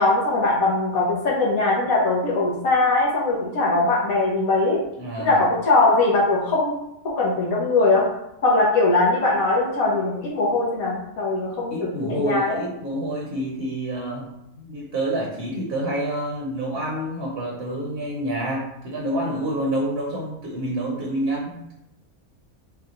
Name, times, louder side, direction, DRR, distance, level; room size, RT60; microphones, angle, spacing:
voice 1, 0.0-4.8 5.2-6.8 7.0-8.0 8.4-12.6, left 2 dB, 80° left, -5 dB, 1.5 m, -21 dB
voice 2, 5.0-5.4 11.7-21.7, right 1 dB, 50° right, -2 dB, 1.1 m, -28 dB
6.8 x 2.3 x 3.0 m, 0.80 s
omnidirectional pair, 1.5 m